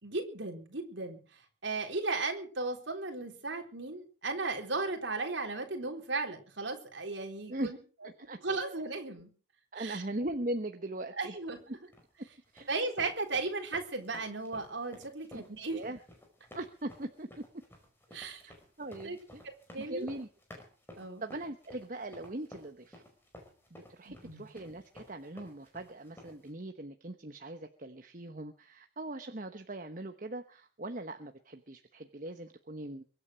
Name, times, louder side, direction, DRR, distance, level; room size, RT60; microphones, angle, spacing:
voice 1, 0.0-7.8 8.4-9.3 9.7-10.0 11.2-11.6 12.7-15.8 18.1-18.4 19.0-19.2 19.7-20.1 21.0-21.2 24.1-24.5, right 3 dB, 60° right, 3 dB, 4.0 m, -36 dB
voice 2, 8.0-8.4 9.7-11.3 12.5-12.7 15.3-15.4 15.7-16.0 16.5-17.4 18.4-19.4 19.8-20.3 21.2-23.0 23.7-33.0, right 1 dB, 40° right, 6 dB, 1.1 m, -40 dB
sound 1, 11.9-26.5, left 1 dB, 10° left, 5.1 m, -54 dB
23.0 x 8.9 x 6.4 m, 0.39 s
head